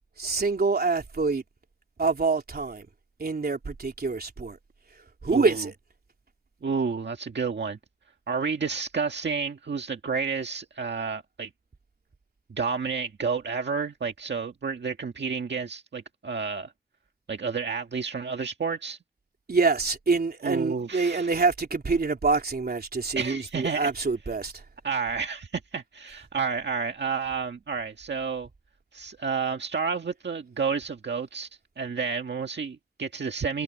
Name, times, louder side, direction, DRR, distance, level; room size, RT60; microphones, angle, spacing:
voice 1, 0.2-1.4 2.0-2.9 3.2-4.6 5.2-5.7 19.5-24.5, right 4 dB, 60° right, 3.4 m, -26 dB
voice 2, 5.3-5.7 6.6-7.8 8.3-11.5 12.5-16.7 17.3-19.0 20.4-21.3 23.1-23.9 24.8-28.5 28.9-31.5 31.8-33.6, right 5 dB, 90° right, 1.7 m, -30 dB
wide cardioid pair, 95°, 18 cm